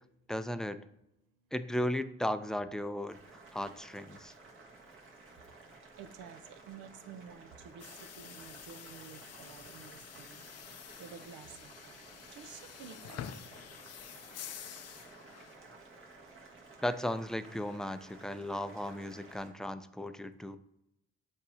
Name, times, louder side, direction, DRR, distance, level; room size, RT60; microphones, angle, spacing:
voice 1, 0.3-0.8 1.5-3.2 3.5-4.3 16.8-20.6, left 1 dB, ahead, 10 dB, 0.4 m, -35 dB
Boiling, 3.1-19.5, right 3 dB, 45° right, 1.6 m, -54 dB
voice 2, 6.0-10.4 11.0-11.9 12.3-13.3, right 7 dB, 85° right, 10 dB, 0.7 m, -51 dB
sound 1, 7.8-15.6, left 9 dB, 55° left, 0.5 m, -48 dB
7.6 x 2.8 x 4.9 m, 0.84 s
cardioid pair, 90°, 30 cm